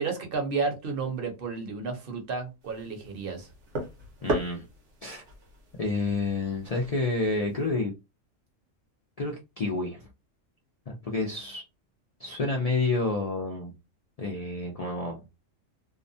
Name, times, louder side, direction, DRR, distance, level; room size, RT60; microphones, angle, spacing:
voice 1, 0.0-3.5, right 4 dB, 50° right, 0.9 m, -32 dB
sound 1, 2.6-7.7, right 1 dB, 65° right, 1.2 m, -37 dB
voice 2, 4.2-4.7 5.0-5.2 5.8-7.9 9.2-10.1 10.9-11.6 12.2-13.7 14.2-15.2, left 3 dB, 70° left, 0.3 m, -29 dB
2.7 x 2.1 x 2.6 m
omnidirectional pair, 1.3 m